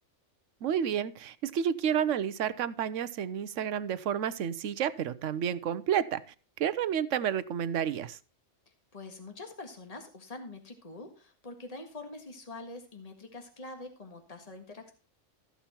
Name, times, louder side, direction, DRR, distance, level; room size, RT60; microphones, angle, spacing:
voice 1, 0.6-6.2 6.6-8.2, right 9 dB, 80° right, 15 dB, 1.1 m, -30 dB
voice 2, 8.9-14.9, left 2 dB, 30° left, 5 dB, 1.8 m, -45 dB
14.0 x 7.0 x 4.4 m, 0.35 s
omnidirectional pair, 1.3 m